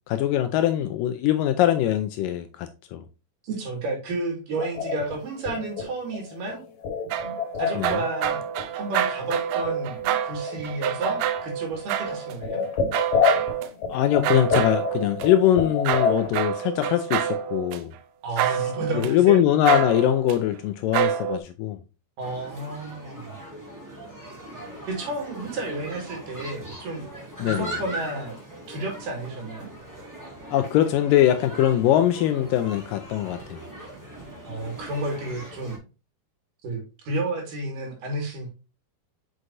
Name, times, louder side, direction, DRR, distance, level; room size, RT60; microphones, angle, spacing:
voice 1, 0.1-3.0 7.8-7.9 13.9-17.9 18.9-21.8 27.4-27.7 30.5-33.6, left 12 dB, 80° left, 2.1 m, -22 dB
voice 2, 3.4-6.7 7.6-8.4 8.7-10.0 10.2-12.6 18.2-19.4 22.2-23.4 24.9-27.1 27.5-28.4 28.7-29.7 34.4-35.8 36.6-38.5, right 2 dB, 65° right, 3.5 m, -31 dB
sound 1, 4.5-8.0 8.2-9.0 9.3-9.4 9.6-10.7 11.1-11.4 11.7-11.8 12.0-16.3, left 5 dB, 60° left, 2.6 m, -28 dB
sound 2, 7.1-12.3 12.9-13.7 14.2-15.3 15.8-17.8 18.4-19.1 19.6-20.4 20.9-21.4, right 10 dB, 80° right, 2.0 m, -27 dB
sound 3, 22.2-35.8, right 1 dB, 5° right, 1.4 m, -40 dB
6.4 x 6.2 x 2.6 m
omnidirectional pair, 4.3 m